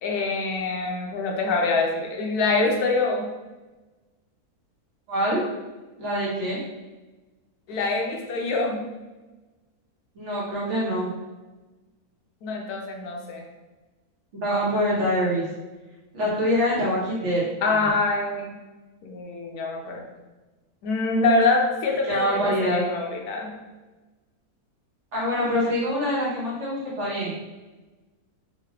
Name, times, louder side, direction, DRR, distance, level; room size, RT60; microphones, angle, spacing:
voice 1, 0.0-3.3 7.7-8.9 12.4-13.4 17.6-18.5 19.0-20.0 20.8-23.6, left 3 dB, 80° left, 1 dB, 1.1 m, -25 dB
voice 2, 5.1-5.4 6.0-6.6 10.1-11.1 14.3-15.5 16.1-17.9 22.0-22.8 25.1-27.3, equal, 55° right, -6 dB, 1.2 m, -25 dB
3.8 x 2.4 x 2.9 m, 1.2 s
omnidirectional pair, 1.7 m